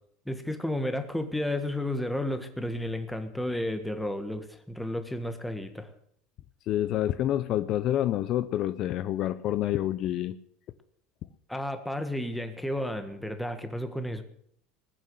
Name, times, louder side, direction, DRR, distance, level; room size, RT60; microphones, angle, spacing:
voice 1, 0.3-5.9 11.5-14.2, left 1 dB, 5° left, 8 dB, 1.6 m, -32 dB
voice 2, 6.7-10.3, left 12 dB, 50° left, 14 dB, 0.6 m, -28 dB
20.0 x 7.5 x 7.9 m, 0.69 s
supercardioid pair, 125°, 0 cm